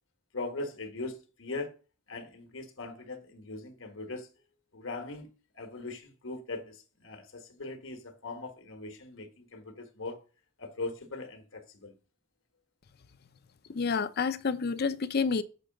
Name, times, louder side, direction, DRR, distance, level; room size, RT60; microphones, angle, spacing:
voice 1, 0.3-1.7 2.1-4.3 4.7-10.2 10.6-11.9, left 3 dB, 75° left, 1.3 m, -40 dB
voice 2, 13.7-15.4, left 5 dB, 50° left, 0.5 m, -29 dB
6.6 x 4.6 x 6.4 m
head